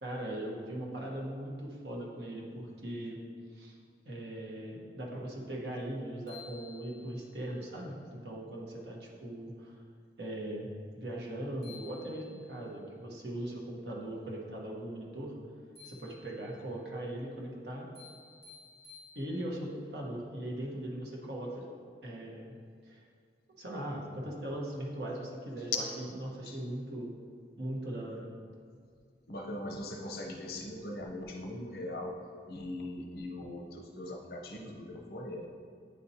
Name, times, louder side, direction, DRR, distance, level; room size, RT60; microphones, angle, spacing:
voice 1, 0.0-3.2 3.5-3.8 4.0-9.8 10.2-10.7 10.9-15.4 15.8-17.9 19.1-21.6 22.0-22.6 22.8-23.0 23.6-27.1 27.6-28.2, right 1 dB, 70° right, -2 dB, 1.1 m, -39 dB
sound 1, 5.8-5.9 6.3-7.4 11.3-11.4 11.6-12.7 15.8-16.7 17.9-19.7, left 5 dB, 20° left, 1.4 m, -54 dB
voice 2, 29.3-32.2 32.5-35.5, left 1 dB, 60° left, 1 dB, 0.7 m, -40 dB
9.2 x 4.2 x 2.8 m, 2.2 s
head